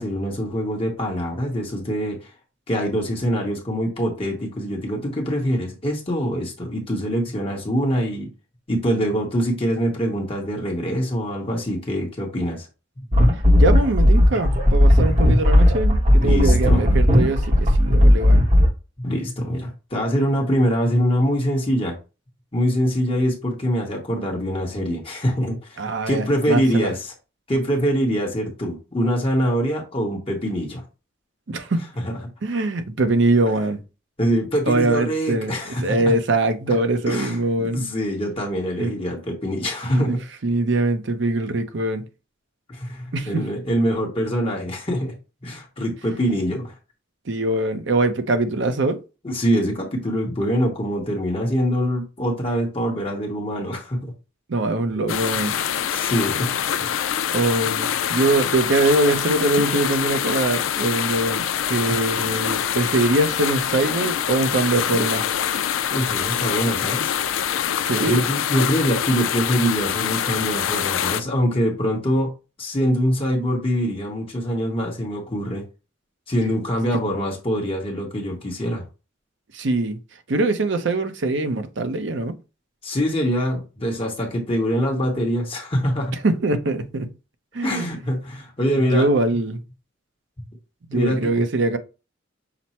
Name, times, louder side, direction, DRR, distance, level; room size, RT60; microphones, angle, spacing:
voice 1, 0.0-2.3 2.7-8.3 8.7-12.7 13.0-13.1 16.2-17.1 19.0-22.0 22.5-27.1 27.5-30.8 32.0-32.1 34.2-36.0 37.1-40.2 42.7-45.1 45.4-46.7 49.2-54.1 55.0-55.2 55.9-56.5 56.8-57.1 61.9-62.0 65.9-67.1 68.0-72.3 72.6-75.6 76.3-78.9 82.8-86.1 87.6-89.1 90.9-91.4, equal, 30° left, 1.0 m, -24 dB
sound 1, 13.1-18.7, left 1 dB, 35° right, 0.9 m, -15 dB
voice 2, 13.6-18.4 25.8-26.9 31.5-31.9 32.4-33.8 34.7-37.8 38.8-38.9 39.9-42.0 43.1-43.5 46.2-46.3 47.3-49.0 54.5-55.5 57.3-65.2 67.8-68.3 79.5-80.0 80.3-82.3 86.2-87.1 87.5-88.0 88.9-89.6 90.9-91.8, right 2 dB, 65° right, 0.6 m, -22 dB
sound 2, 55.1-71.2, left 9 dB, 80° left, 0.4 m, -25 dB
5.9 x 2.1 x 4.2 m
head